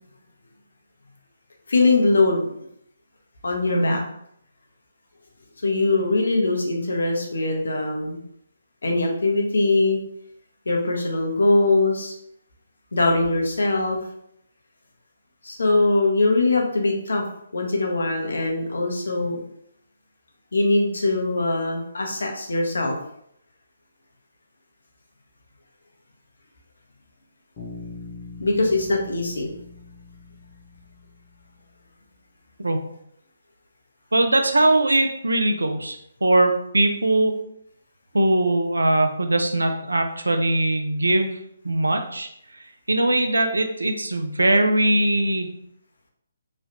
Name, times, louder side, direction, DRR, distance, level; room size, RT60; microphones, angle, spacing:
voice 1, 1.7-2.5 3.4-4.0 5.6-8.2 8.8-10.0 10.7-12.1 12.9-14.0 15.4-17.2 17.5-19.4 20.5-23.0 28.4-29.5, left 2 dB, 75° left, 1 dB, 0.8 m, -21 dB
Bass guitar, 27.6-31.4, left 4 dB, 30° left, 1.0 m, -42 dB
voice 2, 34.1-37.3 38.1-41.4 41.6-45.5, right 1 dB, 85° right, 6 dB, 0.5 m, -21 dB
3.0 x 2.4 x 2.8 m, 0.72 s
figure-of-eight pair, 145°, 0 cm